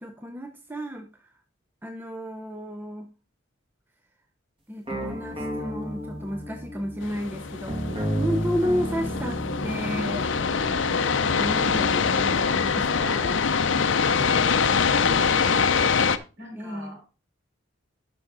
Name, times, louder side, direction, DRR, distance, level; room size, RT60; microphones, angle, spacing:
voice 1, 0.0-1.3 1.8-3.1 4.7-7.8 8.1-10.3 11.2-13.4 16.6-17.0, equal, 10° right, 4 dB, 0.6 m, -32 dB
sound 1, 4.9-12.3, equal, 25° right, 2.1 m, -33 dB
sound 2, 7.0-16.2, left 5 dB, 70° left, 0.6 m, -24 dB
voice 2, 16.4-17.0, equal, 60° right, -1 dB, 5.4 m, -43 dB
11.0 x 6.0 x 3.9 m, 0.32 s
head